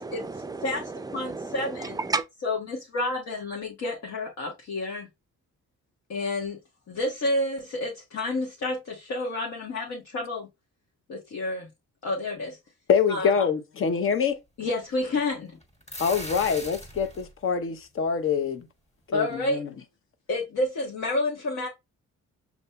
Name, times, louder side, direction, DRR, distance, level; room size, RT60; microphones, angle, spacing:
voice 1, 0.0-2.3, right 3 dB, 15° right, 0.4 m, -33 dB
voice 2, 1.1-2.0 2.4-5.1 6.1-6.6 6.9-10.5 11.1-11.7 12.0-12.6 13.1-13.3 14.6-15.6 19.1-19.6 20.3-21.7, left 2 dB, 65° left, 1.3 m, -29 dB
voice 3, 12.9-14.4 16.0-18.7 19.1-19.7, left 6 dB, 45° left, 0.7 m, -25 dB
sound 1, 15.6-17.3, left 1 dB, 20° left, 1.6 m, -38 dB
6.9 x 2.6 x 2.2 m
cardioid pair, 90°, 30 cm